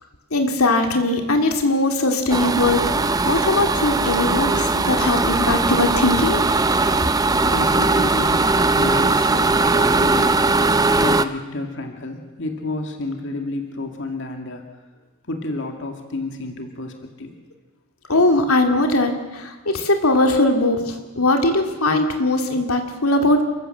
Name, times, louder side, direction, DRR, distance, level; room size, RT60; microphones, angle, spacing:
voice 1, 0.3-2.8 3.2-6.4 18.1-23.4, left 2 dB, 80° left, 4 dB, 2.5 m, -20 dB
sound 1, 2.3-11.2, right 3 dB, 15° right, 0.6 m, -19 dB
voice 2, 7.3-10.5 11.0-14.6 15.3-17.4, left 2 dB, 55° left, 4 dB, 2.3 m, -30 dB
29.5 x 15.0 x 7.9 m, 1.3 s
head